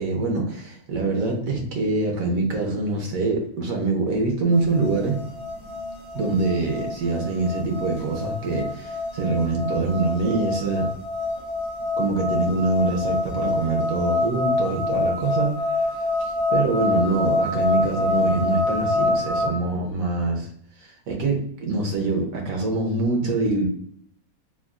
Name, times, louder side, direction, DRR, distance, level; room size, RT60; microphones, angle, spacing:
voice 1, 0.0-5.2 6.1-10.9 12.0-20.5 20.8-23.7, right 3 dB, 70° right, 1 dB, 1.0 m, -24 dB
sound 1, 4.5-19.5, left 2 dB, 40° right, 0.4 m, -26 dB
3.6 x 2.3 x 2.3 m, 0.65 s
omnidirectional pair, 1.6 m